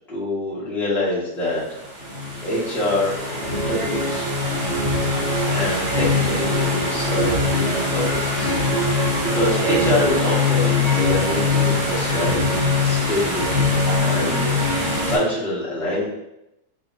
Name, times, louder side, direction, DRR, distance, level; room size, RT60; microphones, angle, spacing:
voice 1, 0.1-1.6 2.4-3.1 3.5-4.3 5.5-8.6 9.0-16.1, left 1 dB, ahead, -8 dB, 1.0 m, -26 dB
sound 1, 1.7-15.2, left 2 dB, 85° right, 2.0 m, -22 dB
6.9 x 2.3 x 2.6 m, 0.88 s
omnidirectional pair, 1.7 m